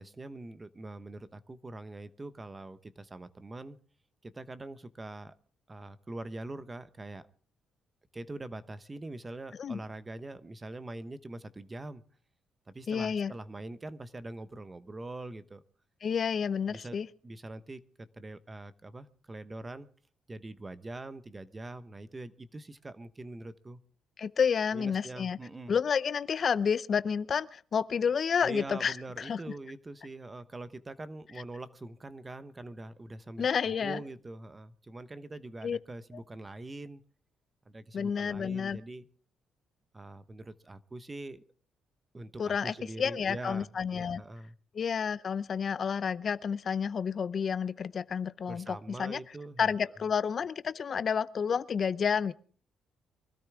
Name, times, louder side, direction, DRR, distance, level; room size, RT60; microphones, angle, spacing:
voice 1, 0.0-3.8 4.2-5.3 5.7-7.3 8.1-12.0 12.7-15.6 16.7-19.9 20.3-23.8 24.7-25.8 28.4-37.0 37.7-39.1 39.9-41.4 42.1-44.6 48.5-49.7, right 2 dB, 20° right, 1.1 m, -43 dB
voice 2, 12.9-13.3 16.0-17.1 24.2-25.4 25.7-29.4 33.4-34.0 35.6-35.8 37.9-38.8 42.4-44.2 44.7-49.2 49.6-52.3, left 6 dB, 50° left, 0.6 m, -30 dB
24.0 x 13.5 x 3.6 m
cardioid pair, 90°, 0 cm